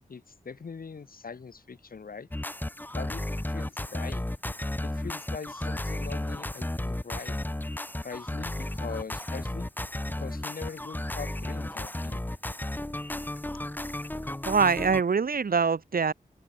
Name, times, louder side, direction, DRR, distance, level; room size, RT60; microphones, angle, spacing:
voice 1, 0.1-2.3 2.9-4.2 4.8-7.4 8.0-9.7 10.1-12.2, left 5 dB, 85° left, 3.1 m, -42 dB
sound 1, 2.3-15.0, left 1 dB, 10° left, 1.3 m, -33 dB
voice 2, 14.5-16.1, right 5 dB, 85° right, 2.3 m, -24 dB
open air
wide cardioid pair, 95°, 15 cm